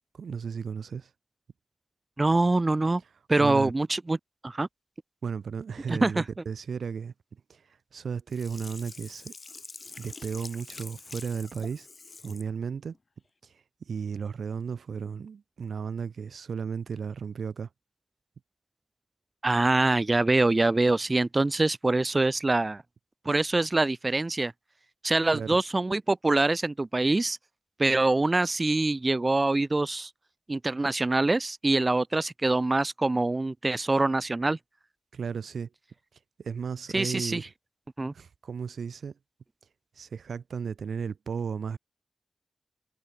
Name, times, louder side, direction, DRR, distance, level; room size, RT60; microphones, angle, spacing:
voice 1, 0.1-1.1 3.4-3.7 5.2-7.1 7.5-9.3 10.0-11.9 12.2-12.9 13.4-13.5 13.8-17.7 25.3-25.6 35.1-35.7 36.4-37.4 38.1-39.1 40.0-41.8, right 6 dB, 80° right, 1.0 m, -34 dB
voice 2, 2.2-3.0 3.3-4.2 4.4-4.7 5.9-6.2 19.4-22.8 23.3-24.5 25.0-27.4 27.8-30.1 30.5-34.6 36.9-37.4 38.0-38.1, right 2 dB, 35° right, 0.4 m, -24 dB
Sink (filling or washing), 8.3-12.5 12.9-13.0, left 3 dB, 50° left, 3.5 m, -45 dB
cardioid pair, 50°, 0 cm